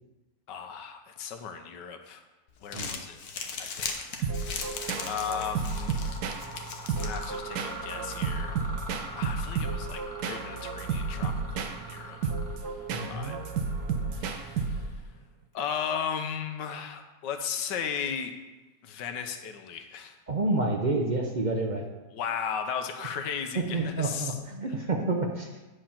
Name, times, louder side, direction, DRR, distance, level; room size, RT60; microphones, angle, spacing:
voice 1, 0.5-2.2 2.6-3.2 3.6-6.0 7.0-8.6 9.1-12.3 12.6-12.8 13.1-13.4 14.1-14.9 15.5-18.4 18.8-20.2 22.1-24.3, left 7 dB, 85° left, 6 dB, 1.4 m, -36 dB
Crumpling crinkling, 2.5-7.8, left 5 dB, 65° left, 1.3 m, -39 dB
Mechanisms, 3.8-4.2 4.5-15.1, equal, 15° left, 0.9 m, -44 dB
sound 1, 4.2-15.1, right 5 dB, 65° right, 1.2 m, -32 dB
voice 2, 12.9-13.4 20.3-21.8 23.5-25.5, right 2 dB, 50° right, 1 dB, 0.5 m, -29 dB
9.1 x 4.9 x 5.7 m, 1.1 s
omnidirectional pair, 1.9 m